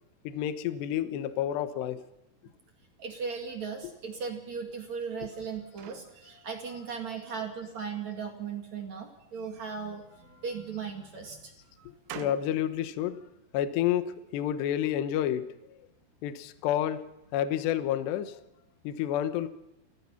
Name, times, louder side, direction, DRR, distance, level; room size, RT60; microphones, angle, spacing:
voice 1, 0.2-2.0 12.2-13.2 13.5-15.5 16.2-17.1 17.3-18.4 18.8-19.5, left 11 dB, 70° left, 11 dB, 2.9 m, -29 dB
voice 2, 3.0-10.0 10.4-11.5, right 6 dB, 45° right, 3 dB, 2.8 m, -37 dB
sound 1, 5.1-7.0 7.5-8.2 9.2-10.7 11.2-12.6, right 11 dB, 80° right, 3.6 m, -49 dB
29.5 x 15.5 x 5.8 m, 0.91 s
omnidirectional pair, 5.5 m